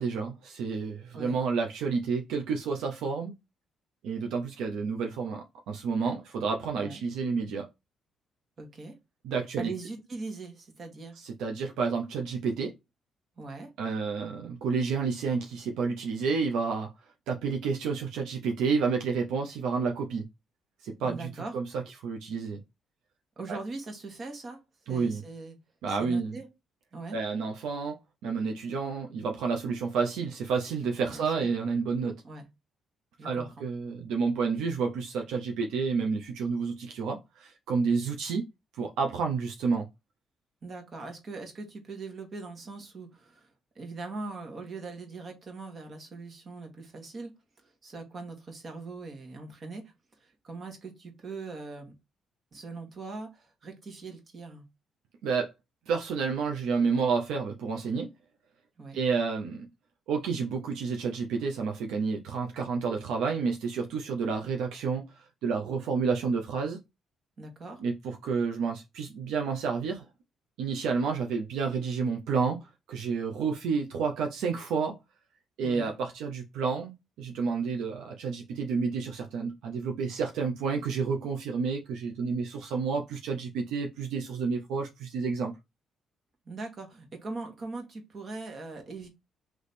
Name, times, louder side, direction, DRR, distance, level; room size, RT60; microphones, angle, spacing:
voice 1, 0.0-3.3 4.0-7.7 9.2-9.7 11.2-12.7 13.8-16.9 17.3-20.2 20.8-22.6 23.5-23.6 24.9-25.2 25.8-26.4 27.1-28.0 28.2-32.1 33.2-38.5 38.7-39.9 55.2-55.5 55.9-58.1 58.9-59.7 60.1-66.8 67.8-70.1 70.6-72.6 72.9-75.0 75.6-76.9 77.2-85.5, right 5 dB, 90° right, 0.6 m, -30 dB
voice 2, 8.6-8.9 9.6-11.2 13.4-13.7 21.0-21.6 23.4-24.6 24.9-25.6 25.9-26.5 26.9-27.2 31.1-31.5 32.2-32.5 33.2-33.6 40.6-43.5 43.7-47.3 47.6-49.8 50.2-51.9 52.5-54.6 58.8-59.0 67.4-67.8 75.6-75.9 86.5-89.1, right 3 dB, 45° right, 1.5 m, -41 dB
3.3 x 3.1 x 4.2 m
cardioid pair, 90°, 0 cm